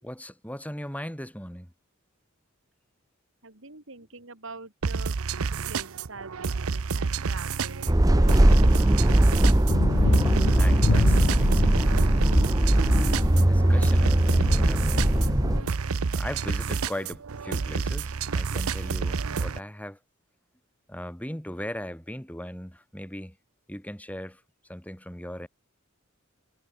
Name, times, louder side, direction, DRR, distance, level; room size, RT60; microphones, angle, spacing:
voice 1, 0.0-1.7 10.1-13.0 13.4-15.3 16.1-20.0 20.9-23.4 23.7-24.4 24.7-25.5, equal, 5° left, 5.9 m, -39 dB
voice 2, 3.4-5.2 5.4-8.0, right 3 dB, 65° right, 4.5 m, -44 dB
sound 1, 4.8-19.6, right 5 dB, 85° right, 0.7 m, -30 dB
sound 2, 7.9-15.6, right 1 dB, 15° right, 0.8 m, -20 dB
sound 3, 9.7-15.7, left 4 dB, 75° left, 0.6 m, -30 dB
head